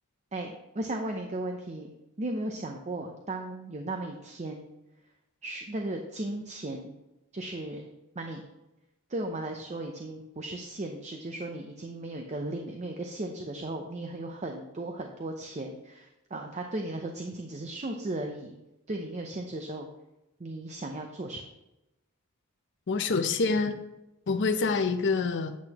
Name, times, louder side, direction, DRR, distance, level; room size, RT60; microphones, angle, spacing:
voice 1, 0.3-1.9 2.2-4.7 5.4-7.0 7.3-7.9 8.2-8.5 9.1-18.6 18.9-19.9 20.4-21.4, right 2 dB, 30° right, 3 dB, 0.6 m, -36 dB
voice 2, 22.9-23.8 24.3-25.6, left 4 dB, 55° left, 8 dB, 0.6 m, -26 dB
8.5 x 7.8 x 2.9 m, 0.93 s
head